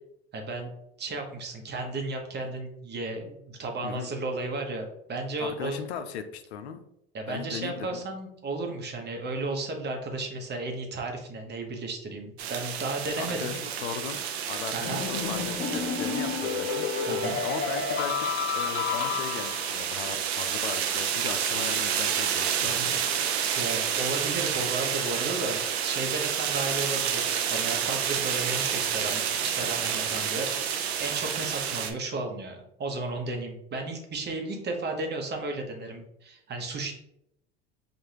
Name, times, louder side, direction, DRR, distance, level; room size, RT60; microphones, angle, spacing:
voice 1, 0.3-0.7 1.0-5.8 7.1-13.6 14.7-15.1 17.1-17.4 22.6-22.9 23.5-36.9, right 2 dB, 35° right, 2 dB, 1.0 m, -34 dB
voice 2, 5.4-6.8 7.3-8.0 13.2-14.2 14.5-17.1 17.4-23.0, left 7 dB, 85° left, 9 dB, 0.5 m, -38 dB
sound 1, 12.4-31.9, right 8 dB, 85° right, 0.6 m, -30 dB
sound 2, 14.8-19.8, left 6 dB, 35° left, 0.7 m, -30 dB
4.7 x 2.5 x 2.8 m, 0.80 s
hypercardioid pair, 80°, 31 cm